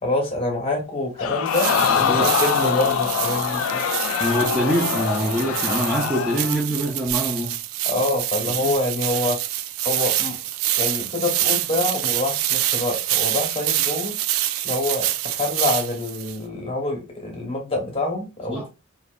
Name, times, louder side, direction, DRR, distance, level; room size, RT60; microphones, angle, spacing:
voice 1, 0.0-3.9 7.8-9.4 9.8-10.4 10.8-14.2 14.6-18.7, left 2 dB, 30° left, 0.9 m, -26 dB
Crowd, 1.2-6.7 7.1-7.2, left 7 dB, 70° left, 0.3 m, -24 dB
sound 1, 1.5-16.4, right 13 dB, 80° right, 0.3 m, -26 dB
voice 2, 1.9-2.3 4.2-7.6 8.6-8.7 18.5-18.7, right 1 dB, 5° right, 0.4 m, -24 dB
2.6 x 2.1 x 2.3 m
head